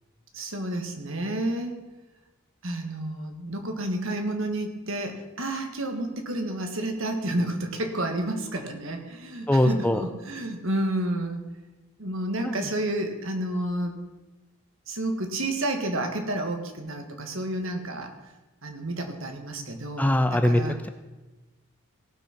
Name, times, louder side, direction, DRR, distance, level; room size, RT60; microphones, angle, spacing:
voice 1, 0.3-1.7 2.6-11.4 12.0-14.0 14.9-18.1 18.6-20.1 20.4-20.7, right 1 dB, 60° right, 5 dB, 1.6 m, -30 dB
voice 2, 9.5-10.0 12.4-12.7 20.0-20.9, left 1 dB, 5° left, 8 dB, 0.5 m, -22 dB
17.5 x 6.2 x 5.8 m, 1.1 s
head